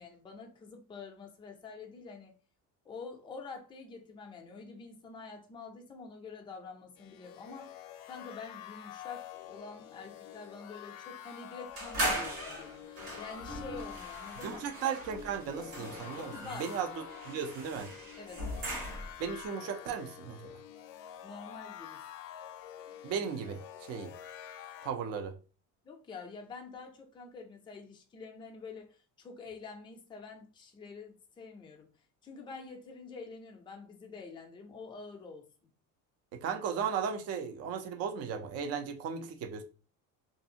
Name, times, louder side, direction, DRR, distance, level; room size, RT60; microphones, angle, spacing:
voice 1, 0.0-2.3 2.8-7.7 8.0-14.6 16.3-16.7 18.2-18.4 21.2-22.0 25.8-31.9 32.2-35.5, left 4 dB, 15° left, 0.4 m, -47 dB
sound 1, 7.0-24.9, left 10 dB, 65° left, 0.5 m, -48 dB
sound 2, 11.8-19.3, right 1 dB, 85° right, 1.5 m, -39 dB
voice 2, 14.4-16.3 16.6-17.9 19.2-20.5 23.0-24.1 24.8-25.3 36.3-39.6, right 7 dB, 45° right, 0.4 m, -36 dB
2.6 x 2.4 x 2.7 m
cardioid pair, 150°, 36 cm